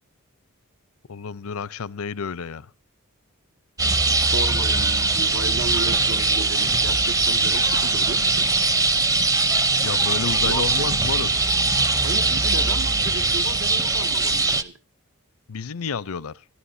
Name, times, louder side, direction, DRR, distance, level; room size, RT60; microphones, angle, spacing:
voice 1, 1.1-2.7 9.8-11.3 15.5-16.4, left 5 dB, 80° left, 0.6 m, -30 dB
sound 1, 3.8-14.6, right 3 dB, 15° right, 0.6 m, -21 dB
voice 2, 4.0-8.5 10.4-11.2 12.0-14.7, right 3 dB, 70° right, 0.9 m, -34 dB
24.5 x 12.0 x 2.6 m
head